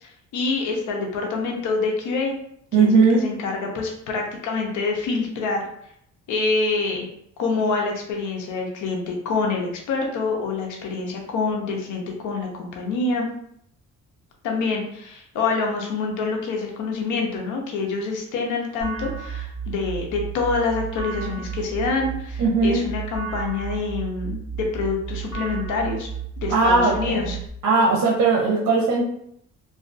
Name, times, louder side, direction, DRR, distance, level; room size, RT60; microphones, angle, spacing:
voice 1, 0.0-2.3 2.8-5.6 6.3-7.1 7.4-13.3 14.4-26.1 26.4-27.4, left 4 dB, 85° left, 1 dB, 0.6 m, -26 dB
voice 2, 2.7-3.3 22.4-22.8 26.5-27.3 27.6-29.0, right 3 dB, 60° right, -2 dB, 0.6 m, -18 dB
sound 1, 18.8-27.5, right 7 dB, 55° left, 0.9 m, -33 dB
2.4 x 2.3 x 2.4 m, 0.71 s
cardioid pair, 90°, 30 cm